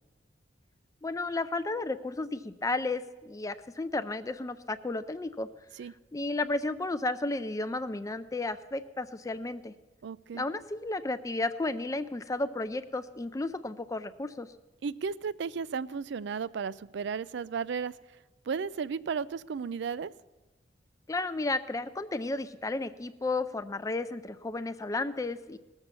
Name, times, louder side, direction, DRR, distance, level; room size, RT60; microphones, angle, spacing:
voice 1, 1.0-5.5 6.1-9.7 10.3-14.5 21.1-25.6, left 2 dB, 20° left, 12 dB, 0.4 m, -33 dB
voice 2, 10.0-10.4 14.8-18.0 18.5-20.1, right 6 dB, 65° right, 18 dB, 0.4 m, -34 dB
19.0 x 7.1 x 6.8 m, 1.1 s
head